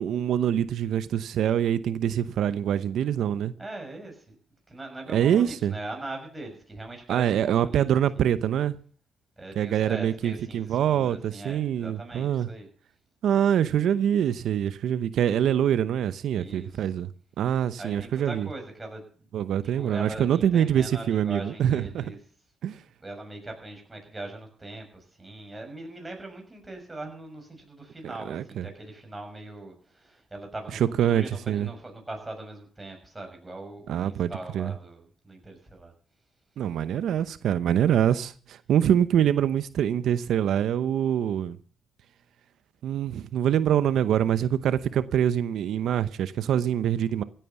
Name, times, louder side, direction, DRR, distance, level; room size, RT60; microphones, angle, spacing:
voice 1, 0.0-3.5 5.1-5.7 7.1-8.8 9.6-12.5 13.2-17.1 17.4-18.5 19.3-22.0 22.6-22.8 28.0-28.7 31.0-31.7 33.9-34.7 36.6-41.6 42.8-47.2, right 10 dB, 70° right, 0.8 m, -25 dB
voice 2, 3.6-4.4 4.7-7.9 8.1-8.2 9.4-12.7 16.3-16.9 17.8-19.3 19.8-22.2 23.0-35.9, right 2 dB, 15° right, 6.5 m, -41 dB
16.0 x 9.2 x 7.1 m
cardioid pair, 90°, 0 cm